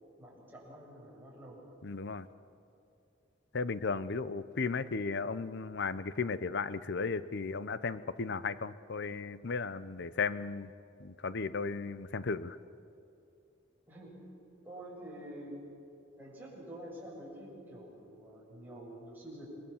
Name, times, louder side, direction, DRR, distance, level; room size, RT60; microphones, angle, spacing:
voice 1, 0.2-1.6 13.9-14.1 14.6-15.6 16.2-19.5, right 1 dB, 10° right, -4 dB, 7.2 m, -47 dB
voice 2, 1.8-2.3 3.5-10.7 11.0-12.6, left 4 dB, 60° left, 15 dB, 0.7 m, -35 dB
28.5 x 21.5 x 7.3 m, 2.6 s
head